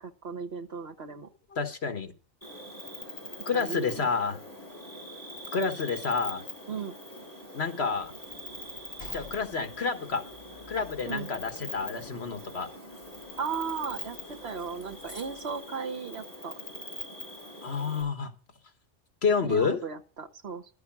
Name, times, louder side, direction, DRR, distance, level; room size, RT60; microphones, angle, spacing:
voice 1, 0.0-1.3 3.5-4.1 6.7-7.0 11.1-11.3 13.4-16.5 19.5-20.7, right 6 dB, 65° right, 7 dB, 1.5 m, -36 dB
voice 2, 1.5-2.1 3.4-4.4 5.5-6.4 7.5-8.1 9.1-10.2 10.7-12.7 17.6-18.3 19.2-19.8, left 5 dB, 65° left, 8 dB, 1.7 m, -29 dB
Cricket, 2.4-18.0, equal, 15° left, 6.4 m, -43 dB
sound 1, 7.9-15.6, left 2 dB, 35° left, 4.8 m, -53 dB
12.5 x 8.0 x 6.1 m, 0.36 s
omnidirectional pair, 1.2 m